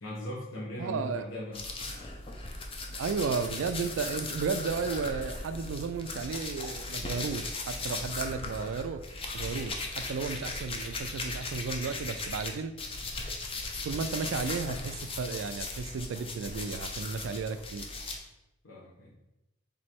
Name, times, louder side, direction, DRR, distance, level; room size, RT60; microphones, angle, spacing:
voice 1, 0.0-1.7 18.6-19.2, left 1 dB, 80° left, -6 dB, 1.0 m, -39 dB
voice 2, 0.8-1.3 2.9-9.0 9.3-12.7 13.8-17.9, right 5 dB, 70° right, 11 dB, 0.3 m, -33 dB
sound 1, 1.5-12.5 12.8-18.2, left 3 dB, 30° left, 0.5 m, -38 dB
3.8 x 3.1 x 4.3 m, 0.92 s
head